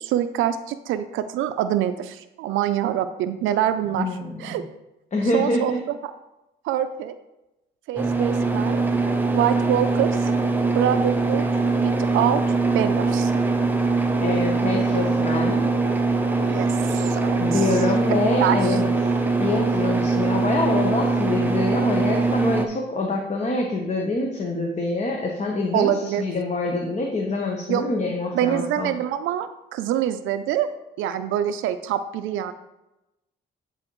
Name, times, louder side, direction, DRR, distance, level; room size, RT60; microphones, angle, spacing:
voice 1, 0.0-4.1 4.4-4.7 5.3-6.0 6.6-7.1 7.9-8.8 9.3-10.3 10.7-11.4 11.8-12.4 12.7-13.3 16.4-17.6 18.1-18.8 25.7-26.3 27.7-27.9 28.3-30.7 31.0-32.5, right 11 dB, 85° right, 10 dB, 0.4 m, -25 dB
voice 2, 4.0-4.6 5.1-5.8 14.2-15.6 17.4-19.1 19.4-29.0, left 2 dB, 35° left, 1 dB, 0.9 m, -25 dB
sound 1, 8.0-22.7, right 3 dB, 10° right, 0.6 m, -22 dB
9.7 x 4.1 x 3.0 m, 0.95 s
cardioid pair, 90°, 20 cm